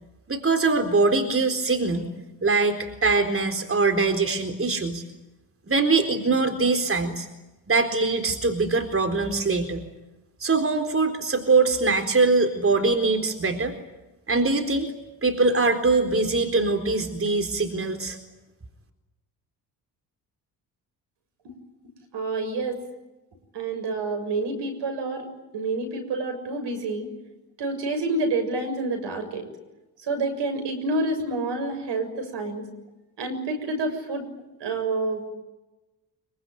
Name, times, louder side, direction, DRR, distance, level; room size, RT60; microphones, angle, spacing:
voice 1, 0.3-2.1 2.4-5.0 5.7-7.3 7.7-9.8 10.4-13.8 14.3-14.9 15.2-18.2, right 3 dB, 30° right, 5 dB, 4.1 m, -22 dB
voice 2, 22.1-22.8 23.5-25.3 25.5-27.1 27.6-29.4 30.0-32.7 33.2-34.2 34.6-35.3, right 2 dB, 70° right, 7 dB, 7.1 m, -28 dB
25.0 x 24.0 x 9.4 m, 1.0 s
hypercardioid pair, 50°, 44 cm